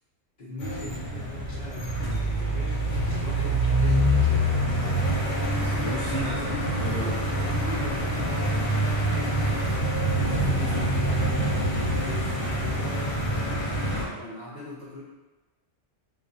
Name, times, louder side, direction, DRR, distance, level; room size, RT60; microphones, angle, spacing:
voice 1, 0.4-4.7 6.2-12.9 14.1-15.0, left 2 dB, 45° left, -9 dB, 0.7 m, -40 dB
sound 1, 0.6-14.0, right 1 dB, 75° left, 1.0 m, -26 dB
voice 2, 5.5-7.2 13.9-14.2, left 1 dB, 55° right, -8 dB, 0.6 m, -34 dB
2.4 x 2.1 x 2.5 m, 1.1 s
omnidirectional pair, 1.3 m